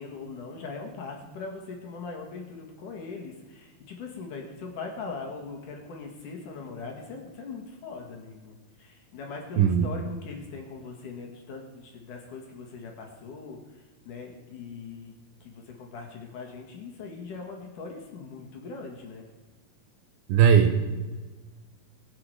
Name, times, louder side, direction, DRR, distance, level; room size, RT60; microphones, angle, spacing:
voice 1, 0.0-15.1 15.4-19.2, left 4 dB, 55° left, 1 dB, 2.8 m, -40 dB
voice 2, 9.6-9.9 20.3-20.8, right 8 dB, 70° right, 6 dB, 2.5 m, -19 dB
22.0 x 7.9 x 4.8 m, 1.3 s
omnidirectional pair, 4.9 m